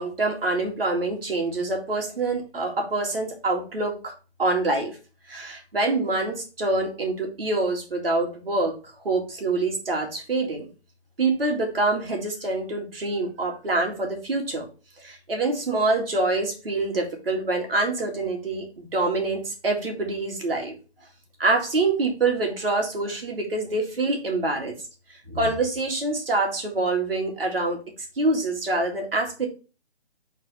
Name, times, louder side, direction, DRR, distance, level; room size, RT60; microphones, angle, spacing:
voice 1, 0.0-5.0 5.3-8.8 9.0-10.7 11.2-14.7 15.0-20.7 21.4-24.7 25.3-27.8 28.2-29.5, right 2 dB, 55° right, 1 dB, 2.1 m, -25 dB
4.8 x 4.0 x 5.0 m, 0.33 s
figure-of-eight pair, 150°, 34 cm